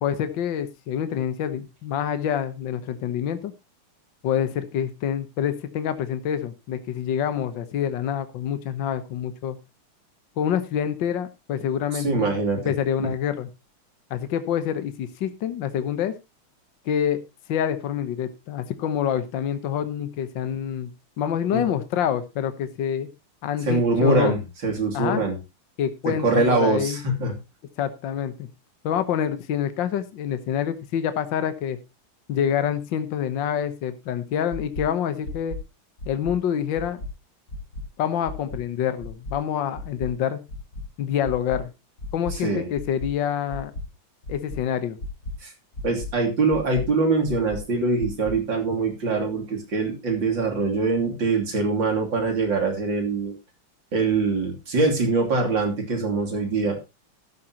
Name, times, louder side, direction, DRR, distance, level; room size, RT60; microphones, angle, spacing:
voice 1, 0.0-3.5 4.2-9.6 10.4-12.4 12.7-13.5 14.1-16.2 16.9-17.2 17.5-20.9 21.2-23.1 23.4-24.3 24.9-25.2 25.8-27.0 27.8-28.5 28.8-31.8 32.3-35.6 36.1-37.0 38.0-40.4 41.0-41.7 42.1-43.7 44.3-45.0, left 9 dB, 60° left, 10 dB, 1.7 m, -26 dB
voice 2, 11.9-12.6 21.5-21.6 23.6-25.4 26.1-27.3 42.3-42.7 45.4-45.5 45.8-53.3 53.9-56.8, right 3 dB, 55° right, 2 dB, 3.6 m, -23 dB
sound 1, 34.5-34.8 35.2-35.6 36.0-36.3 36.7-37.1 37.5-37.8 38.2-38.6 39.0-39.3 39.7-40.1 40.5-40.8 41.2-41.6 42.0-42.3 42.7-43.1 43.5-43.8 44.2-44.6 45.0-45.3 45.7-46.1 46.5-46.8 47.2-47.6 48.0-48.3, left 1 dB, 45° left, 4.5 m, -34 dB
13.0 x 11.5 x 2.9 m, 0.26 s
omnidirectional pair, 2.4 m